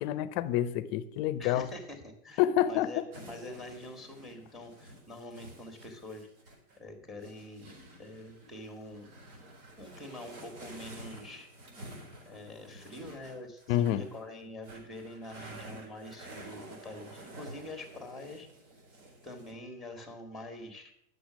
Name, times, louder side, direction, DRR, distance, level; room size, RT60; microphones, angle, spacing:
voice 1, 0.0-1.7 2.4-2.9 13.7-14.0, left 12 dB, 40° left, 0.7 m, -28 dB
voice 2, 1.4-6.3 6.8-9.1 9.4-11.5 12.2-18.5 19.2-20.9, left 1 dB, ahead, 1.6 m, -45 dB
sound 1, 3.1-6.8 7.2-14.2 14.6-19.5, right 1 dB, 80° right, 4.5 m, -50 dB
10.0 x 6.9 x 6.3 m
supercardioid pair, 155°, 44 cm